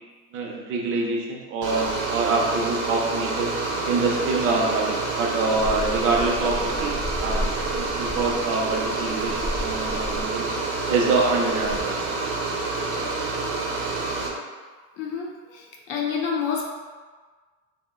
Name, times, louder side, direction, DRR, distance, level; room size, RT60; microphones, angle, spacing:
voice 1, 0.3-3.5 3.8-7.4 7.7-10.5 10.9-12.0, right 3 dB, 40° right, -1 dB, 0.4 m, -25 dB
sound 1, 1.6-14.3, right 3 dB, 85° right, 0.7 m, -28 dB
sound 2, 5.5-11.8, left 1 dB, 30° left, 0.7 m, -34 dB
voice 2, 15.0-16.6, left 6 dB, 70° left, -1 dB, 0.6 m, -28 dB
2.6 x 2.0 x 3.5 m, 1.4 s
cardioid pair, 180°, 36 cm